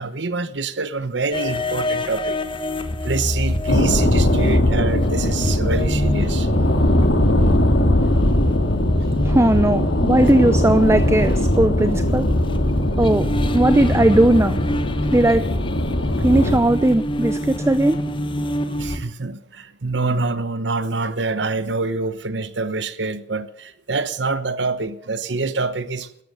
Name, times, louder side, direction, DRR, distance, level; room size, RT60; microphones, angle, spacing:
voice 1, 0.0-2.4 3.0-6.5 9.0-9.1 18.8-26.1, right 3 dB, 70° right, 1.0 m, -26 dB
sound 1, 1.3-19.0, left 1 dB, 30° left, 1.3 m, -26 dB
sound 2, 3.7-16.6, left 1 dB, 80° left, 2.4 m, -20 dB
voice 2, 9.2-12.3 13.0-13.3 13.5-14.6 15.1-15.4 16.2-18.0, right 1 dB, 15° right, 0.6 m, -17 dB
13.5 x 12.0 x 8.0 m
head